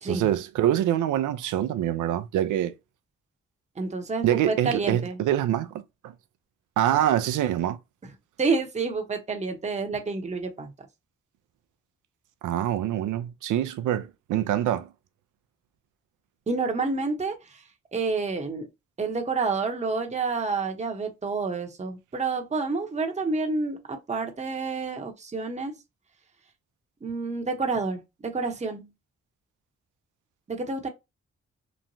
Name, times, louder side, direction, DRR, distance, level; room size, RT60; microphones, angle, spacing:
voice 1, 0.0-2.7 4.2-5.7 6.0-6.1 6.8-7.8 12.4-14.9, right 11 dB, 75° right, 0.5 m, -25 dB
voice 2, 3.8-5.2 8.4-10.7 16.5-17.6 17.9-18.7 19.0-25.7 27.0-28.9 30.5-30.9, right 4 dB, 20° right, 0.7 m, -29 dB
3.0 x 2.1 x 2.6 m
supercardioid pair, 40°, 31 cm